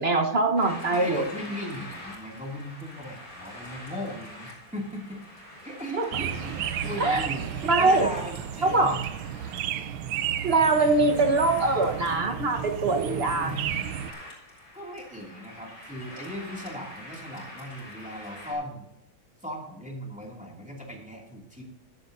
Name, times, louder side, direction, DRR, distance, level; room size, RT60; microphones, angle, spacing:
voice 1, 0.0-1.2 6.0-6.1 7.0-7.3 7.6-8.1 8.6-9.0 10.4-13.8, right 3 dB, 35° right, 4 dB, 1.2 m, -23 dB
sound 1, 0.6-18.5, left 1 dB, 50° left, 4.7 m, -45 dB
voice 2, 0.9-5.2 5.6-7.5 7.8-9.0 10.8-11.1 12.9-13.6 14.7-18.8 19.4-21.6, equal, 5° right, -1 dB, 2.4 m, -37 dB
sound 2, 6.1-14.1, right 10 dB, 75° right, 1.4 m, -33 dB
15.0 x 10.5 x 2.7 m, 0.80 s
omnidirectional pair, 2.4 m